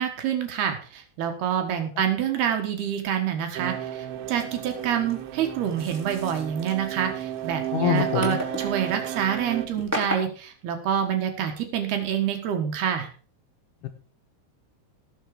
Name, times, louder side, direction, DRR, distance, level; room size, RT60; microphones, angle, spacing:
voice 1, 0.0-13.1, right 9 dB, 65° right, 5 dB, 3.2 m, -27 dB
sound 1, 3.6-9.7, right 11 dB, 85° right, 3.2 m, -33 dB
sound 2, 4.1-10.2, equal, 5° right, 2.8 m, -37 dB
voice 2, 7.7-8.4 13.8-13.9, left 11 dB, 70° left, 6 dB, 2.9 m, -25 dB
18.0 x 7.1 x 4.9 m, 0.39 s
omnidirectional pair, 5.4 m